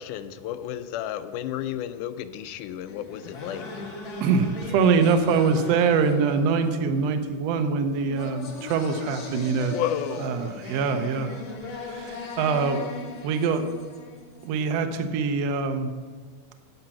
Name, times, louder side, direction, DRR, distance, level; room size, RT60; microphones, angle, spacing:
voice 1, 0.0-3.8 9.7-10.5, left 10 dB, 80° left, 11 dB, 2.0 m, -32 dB
sound 1, 2.9-14.7, left 3 dB, 50° left, 1.6 m, -38 dB
voice 2, 4.2-9.8 10.2-11.4 11.8-12.9 13.2-13.7 14.4-15.9, right 5 dB, 75° right, 7 dB, 1.6 m, -24 dB
10.0 x 6.6 x 5.8 m, 1.6 s
omnidirectional pair, 3.7 m